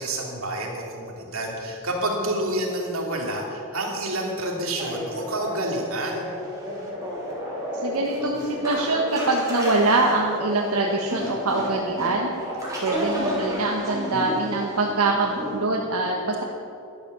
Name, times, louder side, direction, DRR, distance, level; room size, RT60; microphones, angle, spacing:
voice 1, 0.0-6.3, right 1 dB, 65° right, 0 dB, 2.8 m, -28 dB
sound 1, 4.8-15.6, equal, 15° right, 3.7 m, -32 dB
voice 2, 7.8-12.3 12.8-16.4, right 2 dB, 85° right, -1 dB, 1.4 m, -24 dB
12.0 x 12.0 x 6.9 m, 2.7 s
head